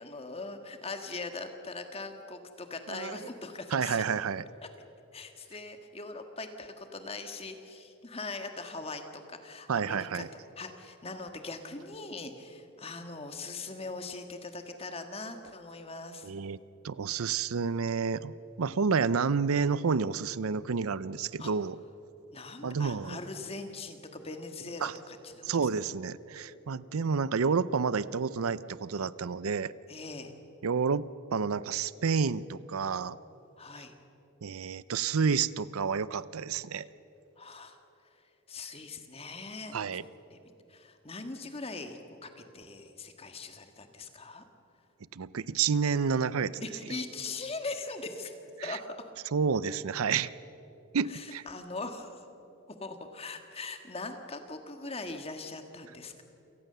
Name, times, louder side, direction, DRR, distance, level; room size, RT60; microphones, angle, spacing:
voice 1, 0.0-4.0 5.1-10.2 10.6-16.3 21.4-21.5 22.3-25.5 29.9-30.3 33.6-33.9 37.4-37.8 38.5-39.8 40.3-44.4 46.6-48.9 51.1-52.2 52.7-56.2, left 3 dB, 25° left, 6 dB, 1.6 m, -41 dB
voice 2, 2.9-3.2 3.7-4.4 9.7-10.3 16.2-16.6 16.8-21.8 22.6-23.2 24.8-24.9 25.4-29.7 30.6-33.2 34.4-36.9 39.7-40.0 45.1-46.6 48.6-48.8 49.3-50.3 50.9-51.4, right 5 dB, 80° right, 18 dB, 0.6 m, -30 dB
28.5 x 18.5 x 6.8 m, 3.0 s
head